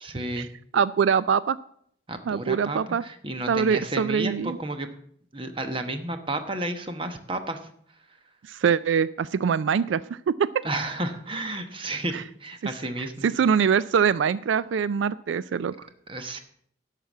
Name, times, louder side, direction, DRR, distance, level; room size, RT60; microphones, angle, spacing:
voice 1, 0.0-0.5 2.1-4.9 5.3-7.6 10.6-13.3 16.1-16.4, right 2 dB, 30° right, 7 dB, 1.0 m, -32 dB
voice 2, 0.7-1.6 2.3-3.0 3.5-4.6 8.5-10.6 12.1-12.2 12.6-12.7 13.0-15.9, right 7 dB, 80° right, 17 dB, 0.3 m, -24 dB
11.5 x 5.8 x 8.1 m, 0.65 s
head